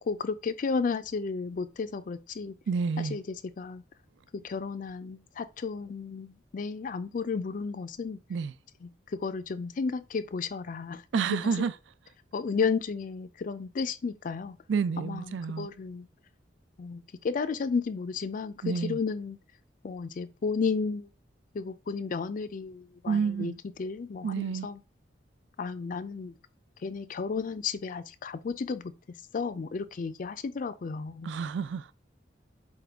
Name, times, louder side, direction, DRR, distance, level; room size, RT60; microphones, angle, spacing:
voice 1, 0.0-2.6 3.0-3.8 4.3-8.2 8.8-11.0 11.3-11.4 12.3-14.6 15.0-16.1 16.8-19.4 19.8-21.1 21.5-23.5 23.8-24.8 25.6-26.3 26.8-28.9 29.3-31.3, left 5 dB, 45° left, 0.4 m, -33 dB
voice 2, 2.7-3.2 8.3-8.5 11.1-11.7 14.7-15.7 18.6-19.0 23.1-23.6 24.2-24.7 31.2-31.9, right 5 dB, 75° right, 0.4 m, -29 dB
4.1 x 3.7 x 3.4 m
head